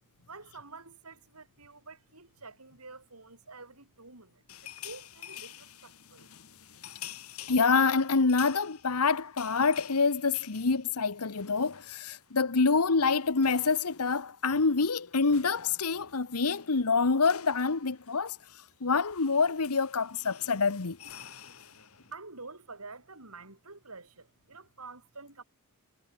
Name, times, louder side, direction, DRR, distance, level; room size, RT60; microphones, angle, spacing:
voice 1, 0.3-6.3 22.1-25.4, right 3 dB, 75° right, 6.9 m, -48 dB
sound 1, 4.5-12.4 12.6-12.8 13.1-22.1, left 11 dB, 70° left, 3.0 m, -49 dB
voice 2, 7.5-18.4 18.8-21.0, left 4 dB, 90° left, 1.1 m, -26 dB
head